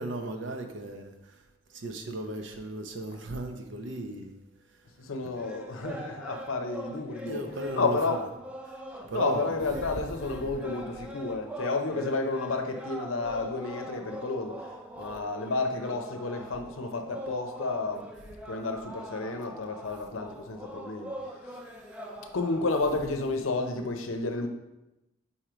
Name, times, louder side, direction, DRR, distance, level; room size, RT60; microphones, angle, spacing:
voice 1, 0.0-1.4 1.7-4.4 7.3-8.2 8.6-8.8 9.1-9.5 10.4-10.5, right 2 dB, 60° right, 0.7 m, -36 dB
voice 2, 5.0-8.2 9.1-18.1 18.5-21.1 22.3-24.5, left 3 dB, 85° left, 0.7 m, -31 dB
sound 1, 5.3-23.0, right 1 dB, 5° right, 0.4 m, -43 dB
4.5 x 4.2 x 5.0 m
head